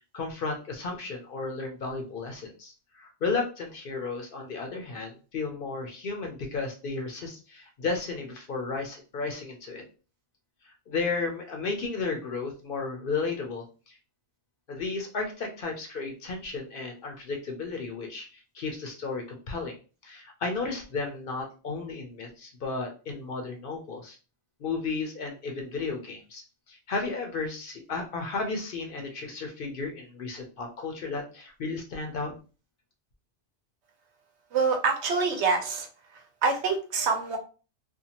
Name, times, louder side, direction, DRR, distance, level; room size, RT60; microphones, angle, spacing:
voice 1, 0.1-9.8 10.9-14.0 14.7-19.7 20.0-24.2 24.6-32.3, left 4 dB, 55° left, 2 dB, 0.7 m, -33 dB
voice 2, 34.5-35.9 36.4-37.4, right 4 dB, 75° right, 5 dB, 0.9 m, -25 dB
2.6 x 2.2 x 2.8 m, 0.34 s
omnidirectional pair, 1.2 m